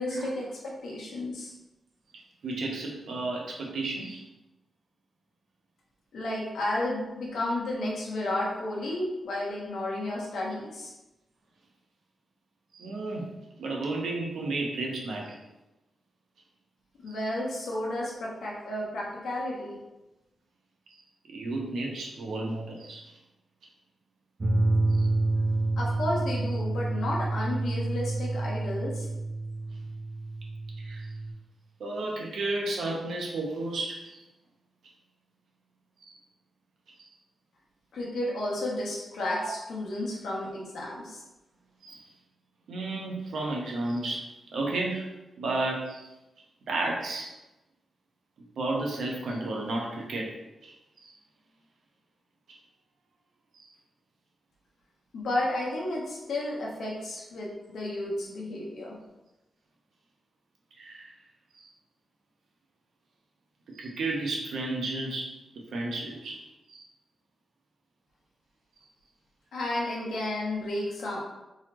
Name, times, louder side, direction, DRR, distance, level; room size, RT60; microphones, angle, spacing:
voice 1, 0.0-1.5 6.1-10.9 17.0-19.8 25.8-29.1 37.9-41.2 55.1-58.9 69.5-71.2, left 1 dB, 90° left, -4 dB, 1.1 m, -32 dB
voice 2, 2.4-4.2 12.7-13.3 13.6-15.4 17.1-17.2 20.9-21.0 21.3-23.0 25.0-25.1 30.8-31.1 31.8-34.2 36.0-36.1 37.0-37.1 39.4-39.5 41.8-42.0 42.7-45.1 45.4-46.1 46.7-47.3 48.6-50.3 50.6-51.1 53.5-53.7 60.8-61.1 61.6-61.7 63.7-65.3 65.7-66.4 66.7-66.8, right 2 dB, 80° right, -1 dB, 0.8 m, -32 dB
sound 1, 24.4-31.3, right 2 dB, 25° right, 0.7 m, -28 dB
4.0 x 3.0 x 3.0 m, 0.99 s
wide cardioid pair, 170°, 0 cm